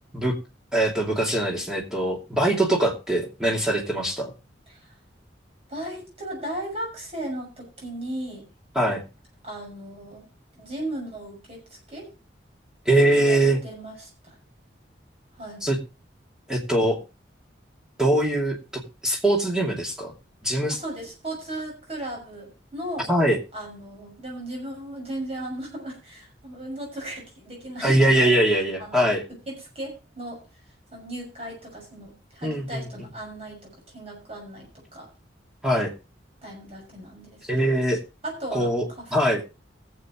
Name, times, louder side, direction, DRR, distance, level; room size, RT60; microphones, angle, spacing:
voice 1, 0.7-4.3 8.7-9.0 12.9-13.6 15.6-15.8 16.5-17.0 18.0-18.6 19.0-20.1 20.4-20.8 23.1-23.4 27.8-29.2 32.4-32.9 35.6-35.9 37.5-38.0 38.5-38.8 39.1-39.4, right 1 dB, 5° right, -2 dB, 2.6 m, -22 dB
voice 2, 5.7-8.4 9.4-10.3 10.5-11.6 11.9-12.1 13.1-14.3 15.4-15.6 20.7-23.1 23.5-28.4 28.8-29.1 29.5-30.4 30.9-35.1 36.4-37.4 38.2-39.1, right 1 dB, 30° right, -1 dB, 6.4 m, -36 dB
23.0 x 7.7 x 3.0 m, 0.30 s
head